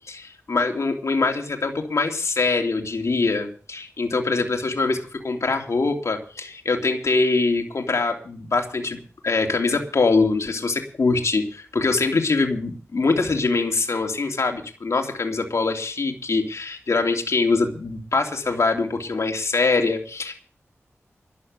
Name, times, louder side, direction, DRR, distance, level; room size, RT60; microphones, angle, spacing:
voice 1, 0.1-5.0 5.2-9.0 9.2-20.4, left 3 dB, 70° left, 3 dB, 3.1 m, -23 dB
13.0 x 9.6 x 8.2 m, 0.38 s
cardioid pair, 55°, 5 cm